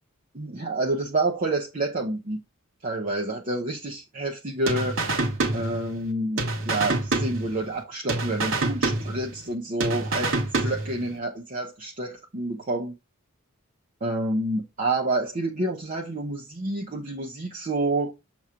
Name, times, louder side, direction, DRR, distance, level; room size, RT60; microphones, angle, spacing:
voice 1, 0.3-2.4 2.8-5.0 5.5-12.9 14.0-18.1, right 2 dB, 40° right, 0.8 m, -28 dB
sound 1, 4.7-6.1 6.4-7.8 8.1-9.5 9.8-11.1, right 2 dB, 60° right, 1.3 m, -27 dB
7.1 x 3.0 x 4.9 m
head